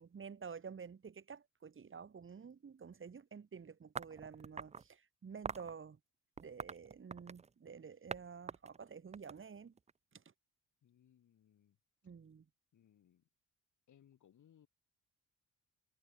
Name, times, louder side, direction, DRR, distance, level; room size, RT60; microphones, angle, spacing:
voice 1, 0.0-6.0 6.4-9.7 10.1-10.2 12.0-12.5, right 6 dB, 40° right, 3.4 m, -50 dB
sound 1, 4.0-4.9 5.4-5.7 6.4-7.5 8.1-8.2 8.5-9.9, right 5 dB, 20° right, 0.5 m, -44 dB
voice 2, 10.8-11.8 12.7-13.2 13.9-14.7, left 10 dB, 65° left, 7.3 m, -67 dB
cardioid pair, 95°, 32 cm